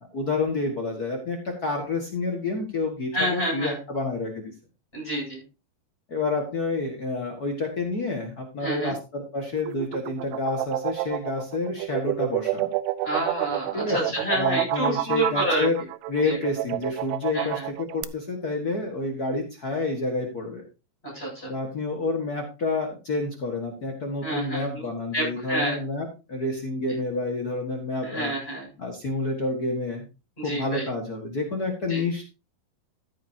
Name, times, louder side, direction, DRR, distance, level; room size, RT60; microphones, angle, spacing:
voice 1, 0.1-4.5 6.1-12.7 13.7-14.0 14.3-15.8 16.1-20.6 21.4-28.3 28.8-30.1 30.4-32.2, left 3 dB, 75° left, 2 dB, 0.8 m, -29 dB
voice 2, 3.1-3.8 4.9-5.4 8.6-8.9 13.0-15.7 16.2-16.4 17.3-17.7 21.0-21.5 24.2-24.8 25.1-25.8 28.0-28.7 30.4-30.9 31.9-32.0, right 1 dB, 15° left, -1 dB, 7.6 m, -28 dB
sound 1, 9.6-18.0, right 16 dB, 85° right, 2.7 m, -29 dB
14.5 x 9.4 x 2.8 m, 0.29 s
omnidirectional pair, 4.7 m